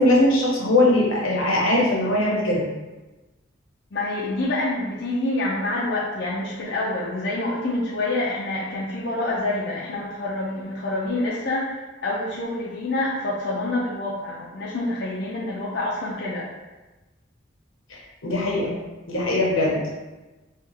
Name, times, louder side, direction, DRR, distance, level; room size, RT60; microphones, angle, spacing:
voice 1, 0.0-2.7 17.9-18.7 19.1-19.8, left 1 dB, 85° left, -3 dB, 0.9 m, -20 dB
voice 2, 3.9-16.5, left 2 dB, 60° left, -7 dB, 0.5 m, -27 dB
3.7 x 2.4 x 2.7 m, 1.1 s
head